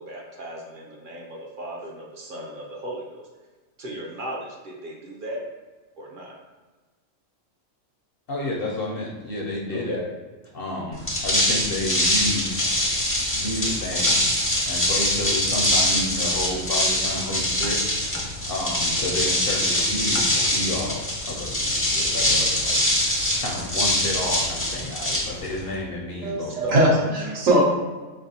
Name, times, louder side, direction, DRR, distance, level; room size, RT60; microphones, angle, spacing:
voice 1, 0.0-3.3 3.8-5.4 6.0-6.3 9.7-10.0 26.6-26.9, equal, 50° right, -2 dB, 0.7 m, -35 dB
voice 2, 8.3-10.0 10.5-12.6 13.3-14.2 14.7-18.1 18.5-22.8 23.4-26.6, left 1 dB, 55° left, -2 dB, 0.7 m, -30 dB
sound 1, 10.9-25.8, left 1 dB, 15° left, 0.4 m, -23 dB
voice 3, 26.2-27.6, right 1 dB, 75° right, -3 dB, 1.4 m, -20 dB
4.0 x 3.3 x 2.7 m, 1.3 s
omnidirectional pair, 1.4 m